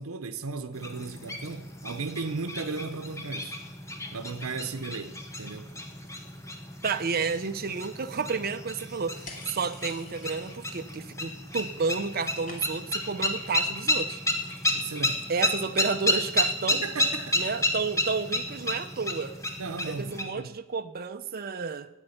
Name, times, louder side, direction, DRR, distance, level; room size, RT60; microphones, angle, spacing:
voice 1, 0.0-3.6 4.1-5.7 14.7-15.3 16.7-17.4 19.6-20.5, right 4 dB, 85° right, 0.8 m, -36 dB
sound 1, 0.7-20.2, left 1 dB, 15° left, 1.7 m, -32 dB
voice 2, 6.8-14.2 15.3-16.8 17.3-19.4 19.8-21.9, right 5 dB, 45° right, 0.7 m, -31 dB
sound 2, 9.3-10.9 11.1-11.7 11.9-13.0, left 3 dB, 40° left, 2.6 m, -47 dB
13.0 x 9.0 x 9.9 m
head